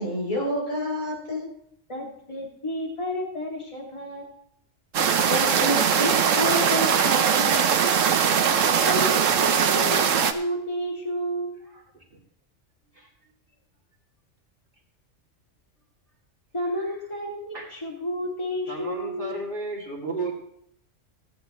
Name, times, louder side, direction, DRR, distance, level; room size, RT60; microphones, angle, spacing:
voice 1, 0.0-1.5 5.3-7.6 8.5-8.6, equal, 40° left, -3 dB, 4.5 m, -28 dB
voice 2, 1.9-4.3 8.9-11.7 16.5-19.4, equal, 25° left, -2 dB, 2.5 m, -31 dB
sound 1, 4.9-10.3, right 7 dB, 90° right, 1.2 m, -21 dB
voice 3, 11.7-12.2 12.9-13.1 16.9-17.0 17.5-17.7 18.7-20.3, right 3 dB, 45° right, -4 dB, 2.8 m, -34 dB
17.5 x 10.0 x 3.1 m, 0.70 s
omnidirectional pair, 1.3 m